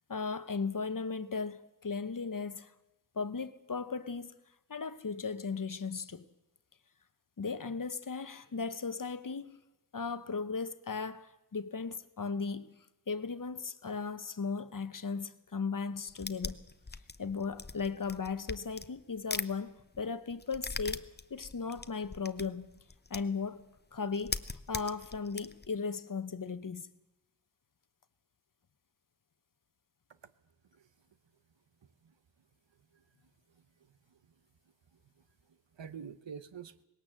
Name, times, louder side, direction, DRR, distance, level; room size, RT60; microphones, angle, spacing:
voice 1, 0.1-2.7 3.1-4.3 4.7-6.2 7.4-9.6 9.9-12.8 13.1-16.6 17.2-21.0 21.3-22.7 23.1-23.7 23.9-24.4 24.7-26.9, left 5 dB, 45° left, 1.0 m, -36 dB
sound 1, 16.1-19.5 19.8-23.4 23.8-23.9 24.1-25.7, left 3 dB, 25° left, 0.7 m, -40 dB
voice 2, 35.5-36.8, right 7 dB, 75° right, 1.0 m, -47 dB
20.0 x 17.5 x 7.5 m
wide cardioid pair, 90°, 44 cm